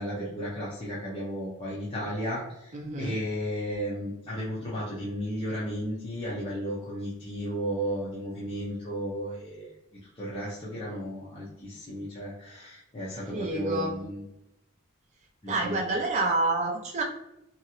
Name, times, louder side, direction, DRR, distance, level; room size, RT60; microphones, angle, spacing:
voice 1, 0.0-2.7 3.0-9.7 10.2-14.2 15.4-15.8, equal, 25° left, -8 dB, 0.6 m, -34 dB
voice 2, 2.7-3.2 13.3-14.0 15.5-17.0, right 2 dB, 30° right, 0 dB, 0.4 m, -28 dB
2.8 x 2.4 x 2.8 m, 0.87 s
head